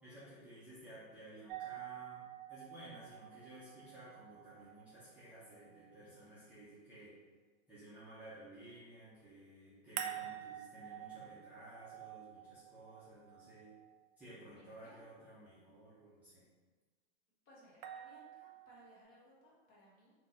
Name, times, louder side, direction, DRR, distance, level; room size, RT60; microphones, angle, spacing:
voice 1, 0.0-7.2 7.7-13.7 14.2-16.4, right 1 dB, 5° right, -13 dB, 0.7 m, -55 dB
sound 1, 1.5-6.5 10.0-14.1 17.8-19.0, right 10 dB, 50° right, 0.4 m, -48 dB
voice 2, 14.5-15.0 17.4-20.1, equal, 30° left, -5 dB, 1.2 m, -63 dB
3.7 x 2.8 x 3.7 m, 1.4 s
hypercardioid pair, 155°, 31 cm